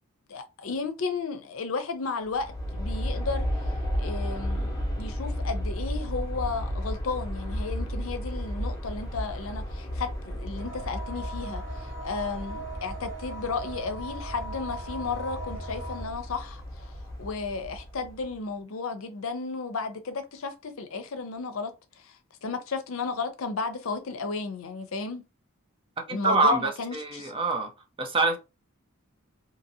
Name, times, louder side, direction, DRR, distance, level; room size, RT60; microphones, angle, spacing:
voice 1, 0.3-3.5 4.0-16.9 17.2-21.7 22.0-22.2 22.4-25.3 26.1-27.3, left 4 dB, 75° left, 0.6 m, -33 dB
Aircraft, 2.2-18.3, equal, 15° left, 0.9 m, -33 dB
sound 1, 10.6-16.0, right 1 dB, 85° right, 1.0 m, -39 dB
voice 2, 26.1-27.7 28.0-28.4, right 3 dB, 25° right, 0.6 m, -25 dB
2.8 x 2.7 x 2.7 m
head